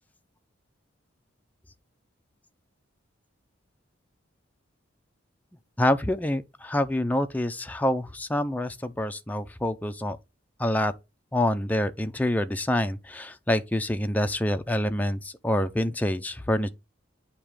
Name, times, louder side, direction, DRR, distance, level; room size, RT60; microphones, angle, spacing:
voice 1, 5.8-10.2 10.6-10.9 11.3-16.7, left 1 dB, 10° left, 0.4 m, -26 dB
8.8 x 2.9 x 4.8 m
head